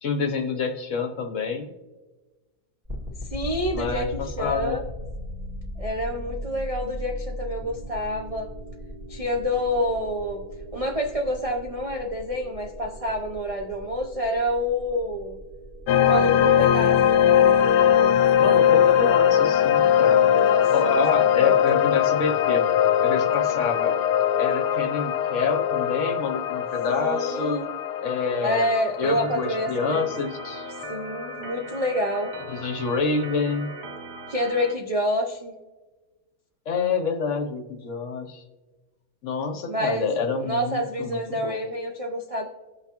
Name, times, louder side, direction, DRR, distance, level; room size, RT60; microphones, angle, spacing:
voice 1, 0.0-1.7 3.7-4.8 18.4-20.3 20.7-22.7 23.0-23.9 24.4-27.6 28.0-30.7 32.5-33.7 36.7-38.4 39.2-41.6, left 5 dB, 55° left, 4 dB, 1.0 m, -27 dB
sound 1, 2.8-19.8, equal, 25° right, 1.5 m, -38 dB
voice 2, 3.3-4.8 5.8-8.5 9.1-10.4 10.7-15.4 16.0-17.2 20.3-21.6 26.9-27.7 28.4-30.1 30.7-32.3 34.3-35.5 39.6-40.1 40.4-42.5, equal, 65° right, 1 dB, 0.3 m, -28 dB
sound 2, 15.9-32.9, left 9 dB, 90° left, 1.2 m, -21 dB
Organ, 29.0-34.7, right 5 dB, 80° right, 1.3 m, -41 dB
17.0 x 5.7 x 2.9 m, 1.2 s
omnidirectional pair, 1.7 m